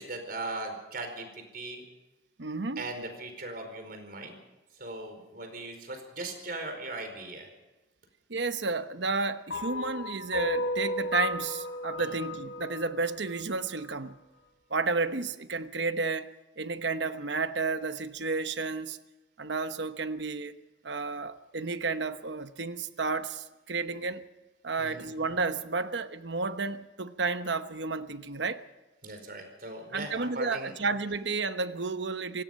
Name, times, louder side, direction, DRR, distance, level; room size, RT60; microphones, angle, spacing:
voice 1, 0.0-1.8 2.8-4.3 4.7-7.5 12.0-12.2 24.8-25.1 29.0-30.7, right 2 dB, 55° right, 4.8 m, -39 dB
voice 2, 2.4-2.8 8.3-14.2 14.7-16.3 16.6-19.0 19.4-20.6 20.8-24.2 24.6-28.6 29.9-32.4, right 4 dB, 75° right, 1.0 m, -32 dB
sound 1, 9.5-13.8, left 2 dB, 75° left, 4.8 m, -34 dB
27.0 x 17.5 x 5.5 m
head